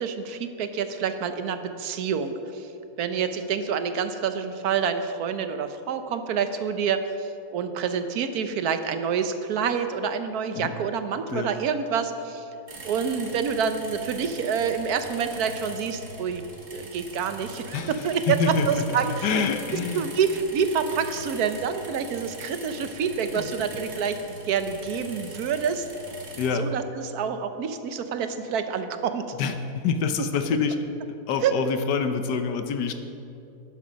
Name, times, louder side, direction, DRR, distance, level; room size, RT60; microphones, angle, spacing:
voice 1, 0.0-2.7 3.0-12.5 12.8-16.4 16.7-19.4 19.9-25.8 26.5-29.2 31.4-31.5, right 6 dB, 70° right, 9 dB, 1.2 m, -27 dB
sound 1, 12.7-26.5, right 2 dB, 50° right, 1.9 m, -42 dB
voice 2, 17.7-20.1 23.3-23.5 26.4-26.7 29.4-30.8 31.3-32.9, left 5 dB, 85° left, 8 dB, 1.4 m, -26 dB
12.0 x 10.5 x 5.2 m, 2.8 s
omnidirectional pair, 1.8 m